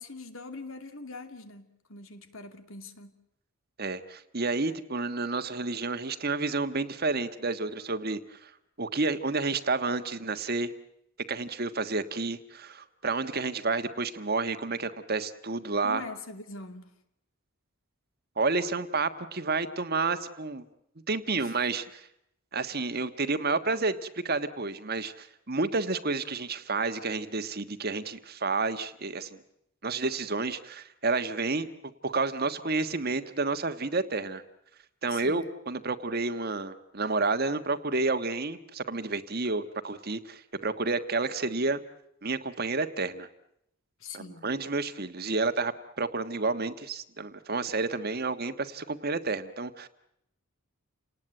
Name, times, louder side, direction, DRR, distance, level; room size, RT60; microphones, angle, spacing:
voice 1, 0.0-3.1 15.8-16.9 21.3-21.5 35.1-35.5 44.0-44.5, left 3 dB, 70° left, 2.7 m, -43 dB
voice 2, 3.8-8.5 8.8-10.7 11.3-16.0 18.4-20.6 21.1-22.1 22.5-29.4 29.8-31.7 32.0-34.4 35.0-41.8 42.2-43.3 44.1-49.9, right 3 dB, 45° right, 1.4 m, -30 dB
29.5 x 19.0 x 9.0 m
head